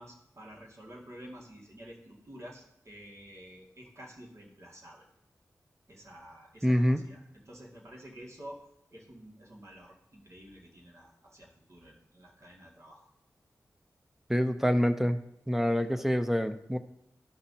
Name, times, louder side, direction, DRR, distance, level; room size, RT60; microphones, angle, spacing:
voice 1, 0.0-5.1 5.9-8.6 8.9-13.1, equal, 50° right, -2 dB, 2.1 m, -50 dB
voice 2, 6.6-7.0 14.3-15.2 15.5-16.8, equal, 5° right, 8 dB, 0.6 m, -26 dB
13.0 x 5.7 x 2.8 m, 0.78 s
cardioid pair, 60°, 6 cm